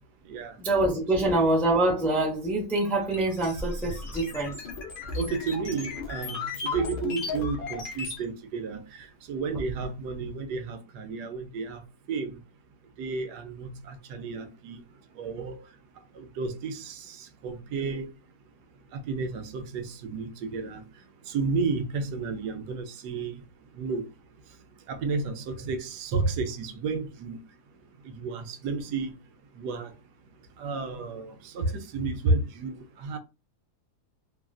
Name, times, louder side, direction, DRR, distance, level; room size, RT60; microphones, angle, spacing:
voice 1, 0.6-4.6, right 2 dB, ahead, 0.5 m, -25 dB
sound 1, 2.7-8.2, left 4 dB, 55° left, 0.5 m, -35 dB
voice 2, 5.2-8.8 9.3-11.8 12.1-12.4 13.0-14.8 15.2-15.6 16.2-17.2 17.4-18.1 19.1-20.8 21.3-23.4 23.8-24.0 24.9-27.4 28.1-29.1 29.6-29.9 30.6-32.7 33.0-33.2, right 4 dB, 85° right, 1.2 m, -31 dB
3.0 x 2.4 x 2.3 m
omnidirectional pair, 1.7 m